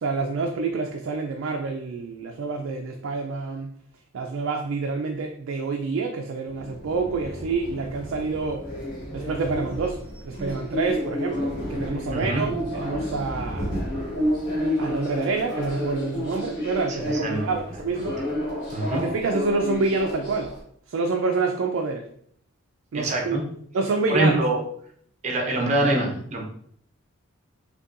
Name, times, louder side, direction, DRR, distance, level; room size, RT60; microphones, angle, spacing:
voice 1, 0.0-3.7 4.1-8.7 9.1-13.7 14.8-18.2 19.0-20.5 20.9-22.1 22.9-23.4 23.7-24.4, right 4 dB, 65° right, 3 dB, 0.3 m, -27 dB
sound 1, 6.5-20.6, left 1 dB, 45° left, 1.2 m, -31 dB
voice 2, 12.1-12.4 16.9-17.5 17.9-18.1 18.7-19.0 22.9-23.4 24.1-24.6 25.2-26.4, right 2 dB, 35° right, 1 dB, 0.7 m, -24 dB
5.3 x 2.2 x 2.4 m, 0.64 s
head